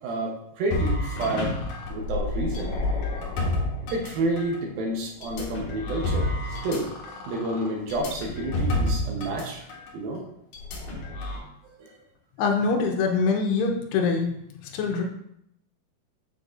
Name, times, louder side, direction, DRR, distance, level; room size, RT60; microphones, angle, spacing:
voice 1, 0.0-1.5 1.9-2.8 3.1-3.4 3.9-6.9 7.2-9.7 9.9-10.2 11.8-11.9, right 2 dB, 75° right, 0 dB, 2.5 m, -30 dB
sound 1, 0.7-4.6 5.2-9.4 9.7-9.9 10.5-11.4, left 2 dB, 60° left, 2.6 m, -29 dB
voice 2, 12.4-14.3 14.7-15.0, left 4 dB, 80° left, 3 dB, 2.8 m, -24 dB
7.5 x 6.5 x 2.5 m, 0.76 s
omnidirectional pair, 4.7 m